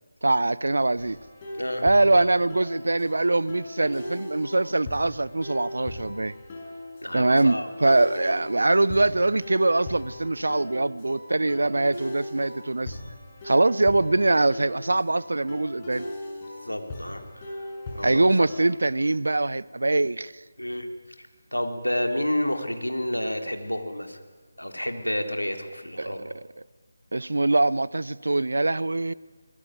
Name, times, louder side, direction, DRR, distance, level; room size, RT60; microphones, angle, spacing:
voice 1, 0.2-1.2 1.8-6.3 7.1-13.0 13.4-16.1 18.0-20.3 26.0-26.4 27.1-29.1, right 2 dB, 65° right, 0.8 m, -23 dB
sound 1, 1.0-18.7, left 1 dB, 25° left, 6.7 m, -39 dB
voice 2, 1.5-1.9 7.0-8.0 16.6-17.5 17.9-18.2 20.6-20.9 21.5-24.2 24.6-26.2, left 1 dB, 85° left, 4.0 m, -30 dB
26.0 x 21.0 x 9.5 m
figure-of-eight pair, 155°, 0 cm